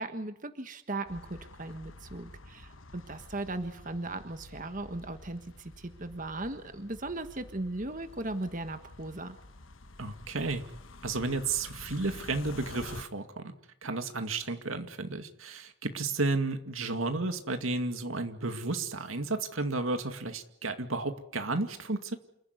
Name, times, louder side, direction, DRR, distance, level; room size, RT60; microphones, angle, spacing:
voice 1, 0.0-9.4, right 2 dB, 40° right, 8 dB, 1.5 m, -37 dB
sound 1, 1.1-13.1, left 2 dB, 80° left, 1.3 m, -49 dB
voice 2, 10.0-10.6 11.0-13.5 13.8-22.1, right 3 dB, 90° right, 7 dB, 2.3 m, -32 dB
28.5 x 15.0 x 9.6 m, 0.76 s
head